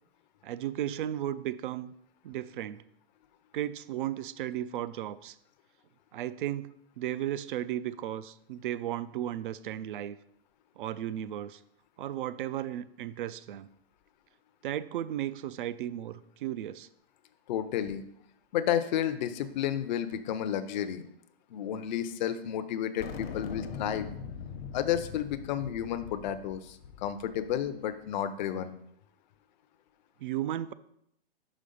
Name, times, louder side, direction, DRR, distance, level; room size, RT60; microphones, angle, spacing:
voice 1, 0.4-1.9 2.2-2.8 3.5-5.4 6.1-6.7 7.0-10.2 10.8-11.6 12.0-13.7 14.6-16.9 30.2-30.7, right 12 dB, 55° right, 16 dB, 0.4 m, -35 dB
voice 2, 17.5-18.0 18.5-21.1 21.5-24.1 24.7-28.7, left 10 dB, 45° left, 10 dB, 0.6 m, -31 dB
sound 1, 23.0-27.7, left 6 dB, 70° left, 1.0 m, -42 dB
5.1 x 4.9 x 5.4 m, 0.76 s
hypercardioid pair, 145°, 31 cm